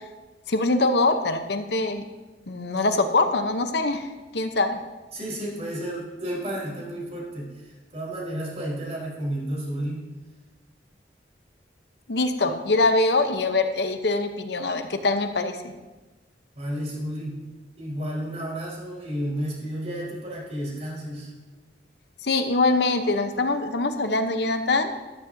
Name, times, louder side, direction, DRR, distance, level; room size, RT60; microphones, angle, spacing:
voice 1, 0.5-2.0 2.5-4.0 4.3-4.8 12.1-15.7 22.2-24.9, left 2 dB, 70° left, 7 dB, 0.8 m, -23 dB
voice 2, 5.1-10.1 12.5-12.6 16.5-17.4 17.8-21.3, right 1 dB, 40° right, -4 dB, 4.3 m, -32 dB
13.5 x 12.5 x 2.7 m, 1.2 s
head